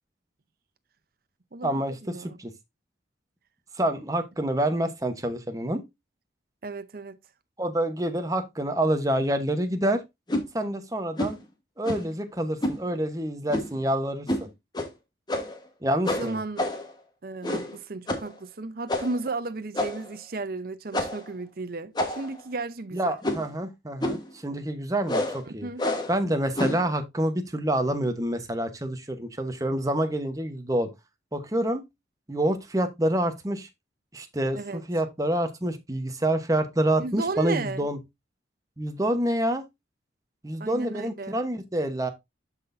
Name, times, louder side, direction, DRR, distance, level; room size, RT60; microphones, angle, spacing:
voice 1, 1.6-2.5 3.7-5.8 7.6-10.0 10.5-11.4 11.8-14.5 15.8-16.4 22.9-25.7 26.1-30.9 31.3-31.8 32.3-33.7 34.1-38.0 38.8-39.6 40.4-42.1, right 1 dB, 20° right, 0.9 m, -27 dB
voice 2, 6.6-7.2 16.2-16.7 17.2-23.1 25.4-25.8 34.5-34.8 37.0-37.9 40.6-41.4, right 3 dB, 50° right, 0.6 m, -34 dB
sound 1, 10.3-10.5 11.2-11.4 11.8-12.1 12.6-12.8 13.5-13.8 14.3-14.5 14.7-14.9 15.3-15.6 16.1-16.9 17.4-17.8 18.1-18.3 18.9-19.2 19.7-20.1 20.9-21.3 22.0-22.4 23.2-23.5 24.0-24.3 25.1-25.4 25.8-26.2 26.6-26.9, left 1 dB, 20° left, 1.2 m, -28 dB
12.5 x 4.1 x 2.6 m
head